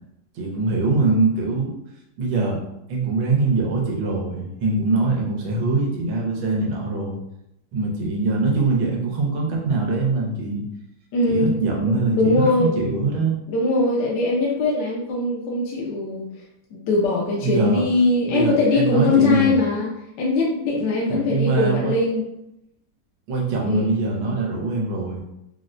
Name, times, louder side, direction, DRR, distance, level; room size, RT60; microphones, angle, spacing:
voice 1, 0.3-1.7 2.2-2.6 2.9-7.2 7.7-10.6 11.2-13.3 17.4-17.8 18.3-19.6 21.1-21.9 23.3-25.2, right 3 dB, 90° right, -1 dB, 1.6 m, -23 dB
voice 2, 11.1-13.0 13.5-16.3 16.7-19.9 20.2-22.3 23.7-23.9, left 2 dB, 70° left, -3 dB, 1.2 m, -21 dB
4.1 x 2.1 x 2.5 m, 0.83 s
omnidirectional pair, 2.2 m